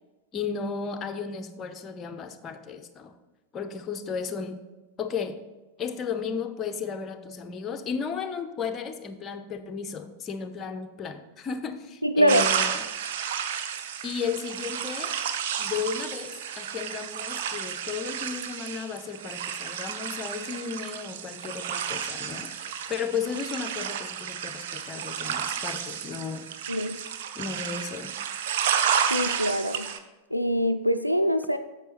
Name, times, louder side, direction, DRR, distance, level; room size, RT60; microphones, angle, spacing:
voice 1, 0.3-3.2 3.5-4.6 5.0-5.4 5.8-12.8 14.0-15.1 15.6-26.5 27.3-28.1, left 6 dB, 25° left, 7 dB, 0.6 m, -34 dB
voice 2, 12.0-12.5 26.7-27.0 29.1-29.9 30.3-31.6, equal, 90° left, 9 dB, 0.3 m, -24 dB
sound 1, 12.3-30.0, right 8 dB, 55° right, 0.6 m, -31 dB
8.9 x 7.0 x 3.1 m, 1.1 s
figure-of-eight pair, 90°, 0 cm